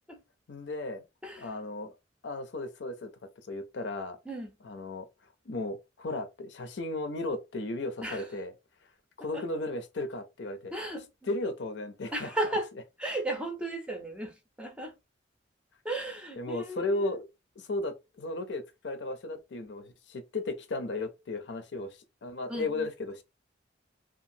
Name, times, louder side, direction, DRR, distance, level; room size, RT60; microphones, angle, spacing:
voice 1, 0.5-1.0 1.4-1.9 2.2-3.1 3.4-4.2 4.6-5.1 5.5-8.5 9.2-10.7 11.2-12.3 16.4-17.3 17.6-23.2, left 2 dB, 65° left, 0.6 m, -35 dB
voice 2, 10.7-11.1 12.1-12.7 13.0-14.9 15.8-17.1 22.5-22.9, right 1 dB, 5° right, 0.6 m, -35 dB
2.8 x 2.4 x 2.6 m
head